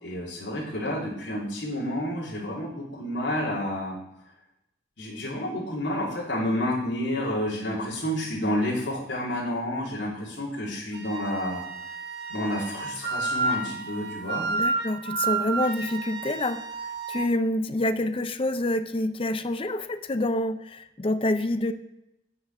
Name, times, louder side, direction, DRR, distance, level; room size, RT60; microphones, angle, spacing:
voice 1, 0.0-3.9 5.0-11.6 12.3-14.5, left 1 dB, 80° left, -6 dB, 3.0 m, -30 dB
Wind instrument woodwind instrument, 10.9-17.3, right 3 dB, 65° right, 0.9 m, -31 dB
voice 2, 14.5-16.6 17.1-21.7, left 1 dB, 30° left, 11 dB, 0.5 m, -27 dB
10.0 x 5.7 x 6.0 m, 0.87 s
head